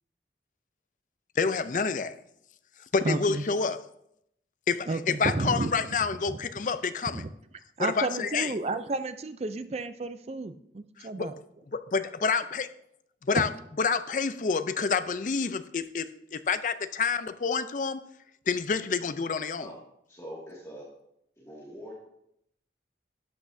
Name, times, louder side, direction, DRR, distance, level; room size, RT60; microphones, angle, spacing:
voice 1, 1.4-2.2 2.9-3.8 4.7-7.2 7.8-8.5 11.0-11.3 11.9-12.7 13.3-13.5 13.8-18.0 18.5-19.7, left 5 dB, 45° left, 12 dB, 0.4 m, -28 dB
voice 2, 3.0-3.4 4.9-5.7 6.3-6.4 7.2-7.3 7.8-11.3 13.3-13.4, right 3 dB, 35° right, 11 dB, 0.4 m, -31 dB
voice 3, 20.1-20.9 21.4-21.9, equal, 15° left, -5 dB, 2.0 m, -43 dB
12.0 x 8.4 x 2.7 m, 0.76 s
head